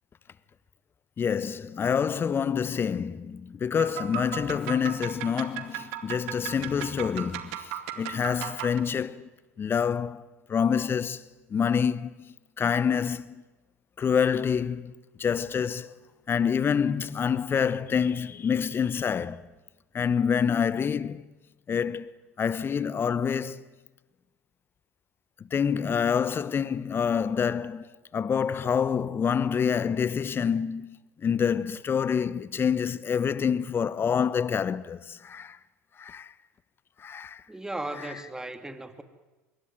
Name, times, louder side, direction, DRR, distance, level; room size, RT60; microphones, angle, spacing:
voice 1, 1.2-7.6 8.0-9.3 9.6-11.2 11.5-12.1 12.6-13.3 14.0-14.9 15.2-15.9 16.3-19.4 19.9-21.2 21.7-22.1 22.4-23.6 25.5-27.8 28.1-31.0 31.2-35.6 36.0-36.3 37.0-37.4 37.9-38.2, left 7 dB, 30° left, 1.1 m, -27 dB
sound 1, 3.8-8.8, right 12 dB, 65° right, 2.3 m, -37 dB
voice 2, 37.5-39.0, right 2 dB, 10° right, 2.4 m, -37 dB
24.5 x 22.0 x 9.6 m
figure-of-eight pair, 75°, 8 cm